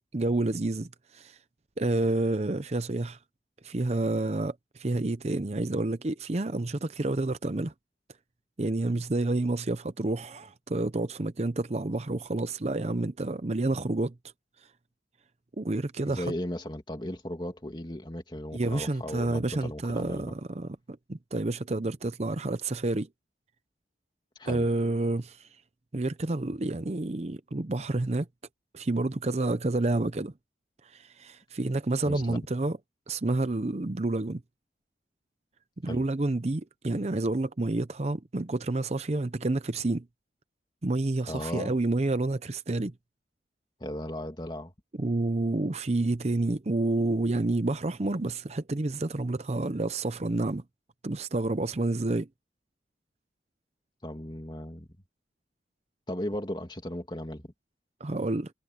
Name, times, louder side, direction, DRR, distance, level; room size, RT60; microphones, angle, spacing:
voice 1, 0.1-1.4 1.8-3.2 3.6-7.7 8.6-14.1 15.6-16.2 18.5-23.1 24.5-25.5 25.9-28.3 28.7-30.3 30.9-32.8 33.1-34.4 35.8-40.1 40.8-42.9 45.0-50.6 51.0-52.3 58.0-58.5, right 2 dB, 35° right, 0.6 m, -29 dB
voice 2, 16.1-20.3 24.4-24.7 32.0-32.4 35.8-36.0 41.3-41.7 43.8-44.7 54.0-54.9 56.1-57.5, left 1 dB, 25° left, 2.5 m, -36 dB
head